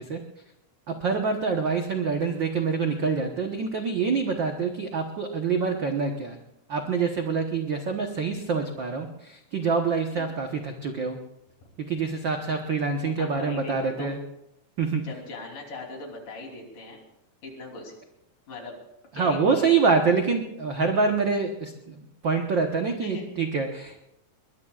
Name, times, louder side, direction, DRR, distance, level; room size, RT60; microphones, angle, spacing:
voice 1, 0.9-6.4 6.7-11.2 11.8-14.2 14.8-15.1 19.2-24.0, right 5 dB, 65° right, 4 dB, 1.1 m, -26 dB
voice 2, 13.2-14.2 15.0-17.0 17.4-17.9 18.5-18.8 19.1-19.7 23.0-23.3, left 2 dB, 80° left, 1 dB, 4.8 m, -39 dB
22.5 x 21.0 x 2.4 m, 0.83 s
omnidirectional pair, 3.7 m